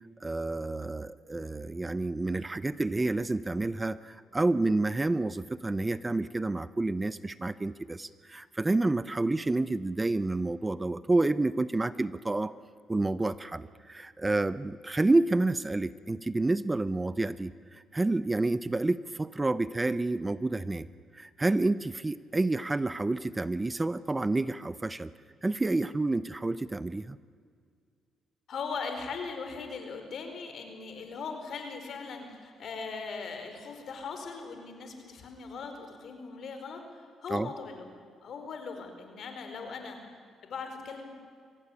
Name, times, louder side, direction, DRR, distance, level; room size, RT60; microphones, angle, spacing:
voice 1, 0.2-12.5 12.9-20.9 21.1-25.1 25.4-27.2 37.3-37.5, right 2 dB, 20° right, 16 dB, 0.7 m, -29 dB
voice 2, 28.5-37.9 38.2-40.0 40.4-41.1, left 5 dB, 60° left, 6 dB, 4.6 m, -39 dB
24.0 x 17.0 x 10.0 m, 2.1 s
cardioid pair, 90°, 0 cm